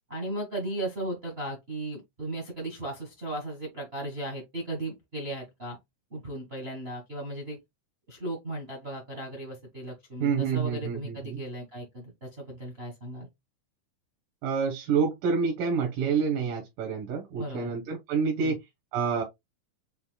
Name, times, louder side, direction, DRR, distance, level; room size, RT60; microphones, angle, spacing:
voice 1, 0.1-5.8 6.1-7.6 8.1-13.3 17.4-17.7 18.4-18.6, right 1 dB, 60° right, 0.6 m, -36 dB
voice 2, 10.2-11.4 14.4-18.5 18.9-19.2, right 6 dB, 90° right, 2.8 m, -28 dB
6.7 x 2.8 x 2.3 m
omnidirectional pair, 3.7 m